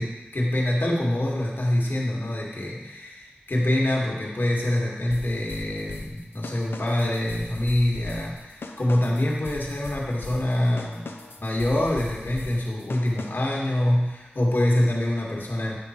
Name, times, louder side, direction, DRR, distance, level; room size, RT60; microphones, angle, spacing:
voice 1, 0.0-11.1 11.4-15.8, left 1 dB, 65° left, -3 dB, 1.6 m, -25 dB
sound 1, 5.1-13.6, left 3 dB, 85° left, 0.5 m, -40 dB
9.0 x 3.7 x 4.3 m, 1.1 s
cardioid pair, 40°, 4 cm